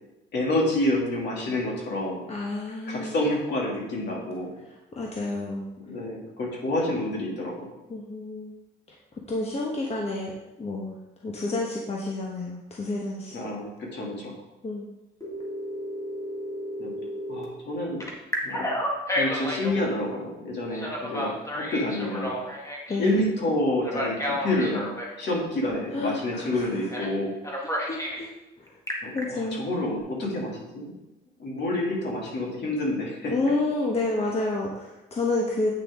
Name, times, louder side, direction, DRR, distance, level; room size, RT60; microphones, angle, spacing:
voice 1, 0.3-2.2 2.9-4.5 5.9-7.7 13.3-14.3 16.8-16.9 17.3-18.0 18.4-18.8 19.1-22.3 23.0-24.9 25.1-27.3 29.0-30.9 31.4-33.5, left 1 dB, 60° left, -3 dB, 2.8 m, -28 dB
voice 2, 2.3-3.2 4.9-5.6 7.9-8.5 9.3-10.3 10.6-11.0 11.2-13.4 14.6-14.9 22.9-23.1 25.9-26.6 27.9-28.3 29.1-29.6 33.3-35.7, left 2 dB, 30° left, -1 dB, 1.3 m, -29 dB
Telephone, 15.2-17.5 18.0-19.8 20.7-23.0 23.8-25.1 26.9-27.1 27.4-28.2 28.7-29.2, left 1 dB, 15° left, 1.9 m, -31 dB
9.0 x 5.9 x 3.7 m, 0.99 s
cardioid pair, 90°, 20 cm